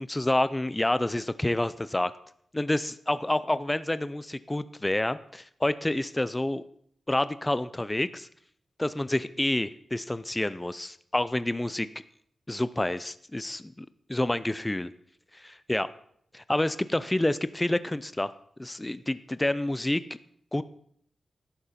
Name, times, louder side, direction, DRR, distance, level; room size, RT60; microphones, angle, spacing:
voice 1, 0.0-2.1 2.5-6.6 7.1-8.3 8.8-11.9 12.5-14.9 15.3-15.9 16.5-18.3 18.6-20.0 20.5-20.6, left 1 dB, 10° left, 15 dB, 0.4 m, -28 dB
11.5 x 8.9 x 4.2 m, 0.66 s
wide cardioid pair, 135°, 0 cm